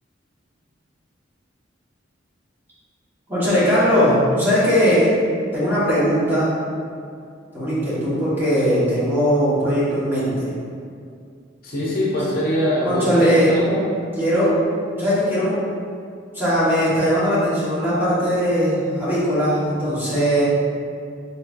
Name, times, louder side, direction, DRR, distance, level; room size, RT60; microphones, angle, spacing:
voice 1, 3.3-5.1 5.5-6.6 7.5-10.5 12.8-13.5 14.2-14.5 15.0-15.6 16.3-20.4, equal, 10° right, -12 dB, 1.5 m, -19 dB
voice 2, 11.6-13.8, equal, 50° left, -6 dB, 0.8 m, -22 dB
4.3 x 4.1 x 2.6 m, 2.3 s
head